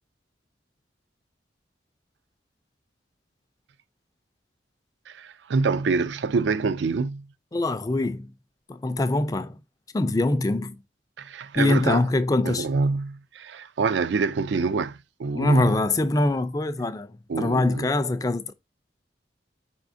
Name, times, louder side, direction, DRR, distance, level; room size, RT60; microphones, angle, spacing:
voice 1, 5.1-7.3 11.2-12.1 12.4-15.7 17.3-17.9, right 4 dB, 75° right, 0.4 m, -26 dB
voice 2, 7.5-8.3 8.7-9.6 9.9-10.8 11.6-12.7 15.3-17.1 17.4-18.5, left 2 dB, 20° left, 0.3 m, -23 dB
4.9 x 3.6 x 2.5 m
head